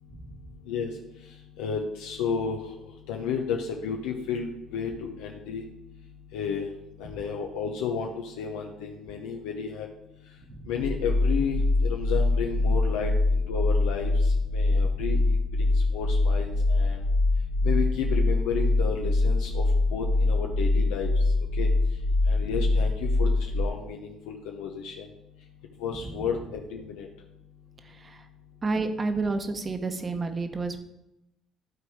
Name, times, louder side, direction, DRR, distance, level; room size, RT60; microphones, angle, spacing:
voice 1, 1.6-2.6 3.1-5.6 6.3-6.6 7.0-9.9 10.7-17.0 17.6-19.6 19.9-21.1 21.6-21.7 22.3-25.1 25.8-27.1, left 6 dB, 90° left, 1 dB, 0.7 m, -32 dB
sound 1, 10.8-23.7, left 2 dB, 60° left, 0.8 m, -24 dB
voice 2, 28.6-30.8, right 3 dB, 30° right, 8 dB, 1.0 m, -30 dB
12.0 x 4.0 x 4.7 m, 0.88 s
supercardioid pair, 85°, 0 cm